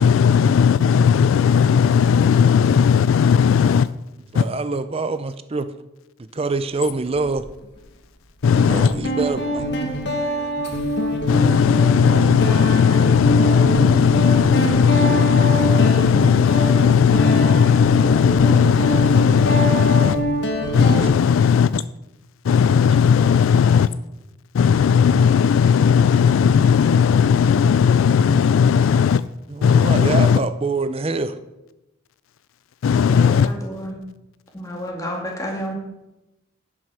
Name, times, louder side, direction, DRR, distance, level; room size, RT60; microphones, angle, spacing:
voice 1, 0.0-3.9 4.3-4.5 8.4-8.9 11.3-20.2 20.7-21.8 22.4-23.9 24.5-29.2 29.6-30.4 32.8-33.5, left 7 dB, 75° left, 16 dB, 0.3 m, -16 dB
voice 2, 4.3-5.7 6.3-7.4 8.7-9.6 29.5-31.4, right 3 dB, 30° right, 11 dB, 0.5 m, -25 dB
Guitar, 7.2-7.4 8.4-21.1, equal, 55° left, 1.4 m, -24 dB
voice 3, 33.0-34.0 34.5-35.7, equal, 15° left, 0 dB, 2.2 m, -30 dB
10.5 x 6.3 x 6.1 m, 0.95 s
head